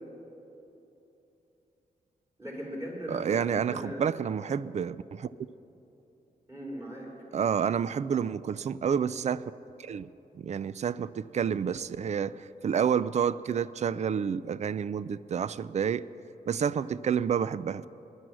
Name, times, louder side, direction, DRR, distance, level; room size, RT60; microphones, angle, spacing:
voice 1, 2.4-4.1 6.5-7.1, equal, 15° right, -3 dB, 4.3 m, -38 dB
voice 2, 3.1-5.3 7.3-9.4 9.8-10.1 10.3-16.0 16.5-17.9, right 7 dB, 45° right, 17 dB, 0.4 m, -29 dB
19.0 x 11.0 x 6.3 m, 3.0 s
wide cardioid pair, 125°, 16 cm